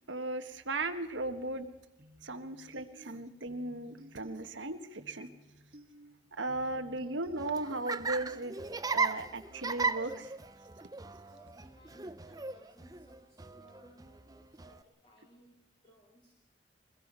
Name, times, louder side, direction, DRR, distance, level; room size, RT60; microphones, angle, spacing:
voice 1, 0.1-1.7 2.2-5.3 6.4-8.6 8.9-10.3, right 2 dB, 85° right, 7 dB, 1.4 m, -37 dB
sound 1, 2.0-8.0, equal, 50° right, 1.9 m, -57 dB
Laughter, 7.3-14.8, right 4 dB, 20° right, 0.6 m, -37 dB
voice 2, 11.2-15.6 15.8-16.3, equal, 30° left, -2 dB, 2.9 m, -62 dB
23.0 x 21.0 x 5.5 m, 0.98 s
head